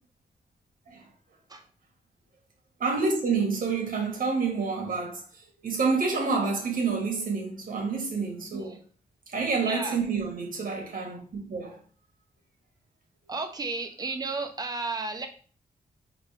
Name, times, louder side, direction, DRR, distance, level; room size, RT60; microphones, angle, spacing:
voice 1, 2.8-5.2 5.6-8.8 9.3-11.8, right 4 dB, 65° right, 1.3 m, -28 dB
voice 2, 9.6-10.0 13.3-15.3, right 3 dB, 25° right, 0.7 m, -33 dB
5.2 x 2.8 x 3.2 m
wide cardioid pair, 140°, 15 cm